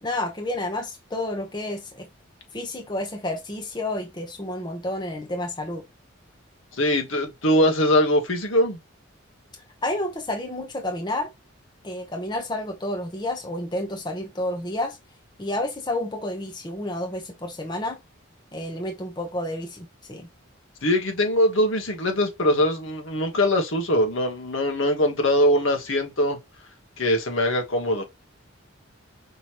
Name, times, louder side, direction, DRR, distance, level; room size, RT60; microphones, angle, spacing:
voice 1, 0.0-2.1 2.5-5.8 9.8-11.3 11.8-15.0 15.4-18.0 18.5-20.3, left 1 dB, 20° left, 0.9 m, -30 dB
voice 2, 6.8-8.8 20.8-26.4 27.0-28.0, left 1 dB, 75° left, 1.3 m, -22 dB
5.4 x 3.0 x 3.0 m
head